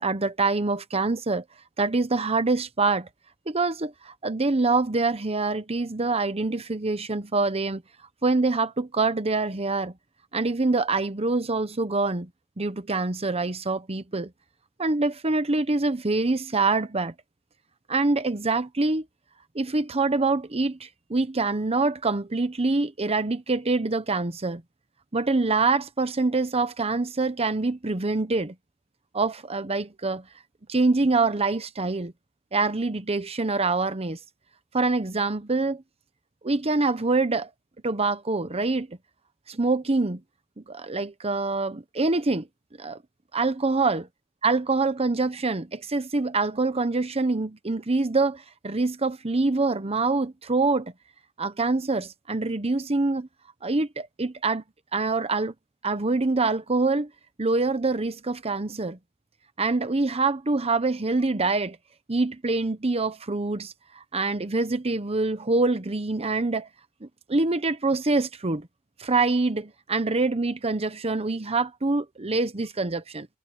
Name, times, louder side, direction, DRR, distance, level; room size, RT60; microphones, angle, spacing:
voice 1, 0.0-1.4 1.8-3.1 3.5-7.8 8.2-9.9 10.3-12.3 12.6-14.3 14.8-17.1 17.9-19.0 19.5-24.6 25.1-28.5 29.1-30.2 30.7-32.1 32.5-34.2 34.7-35.8 36.4-37.5 37.8-38.9 39.5-40.2 40.7-42.5 42.8-43.0 43.3-44.0 44.4-50.9 51.4-53.3 53.6-54.6 54.9-55.5 55.8-57.1 57.4-59.0 59.6-61.8 62.1-63.7 64.1-66.7 67.0-68.7 69.0-73.3, right 3 dB, 30° right, 0.9 m, -25 dB
head